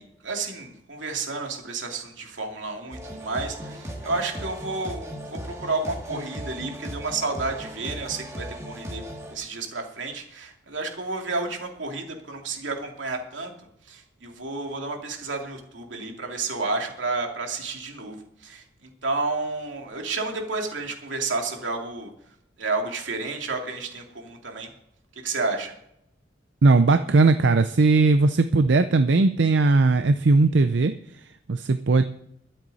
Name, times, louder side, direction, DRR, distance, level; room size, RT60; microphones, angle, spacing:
voice 1, 0.0-9.0 9.3-13.5 13.9-22.1 22.6-24.7 25.1-25.7, right 3 dB, 85° right, 2 dB, 2.6 m, -31 dB
sound 1, 2.9-9.4, equal, 15° right, 2.2 m, -37 dB
voice 2, 26.6-30.9 31.5-32.0, right 3 dB, 70° right, 10 dB, 0.6 m, -18 dB
22.5 x 7.8 x 4.1 m, 0.77 s
head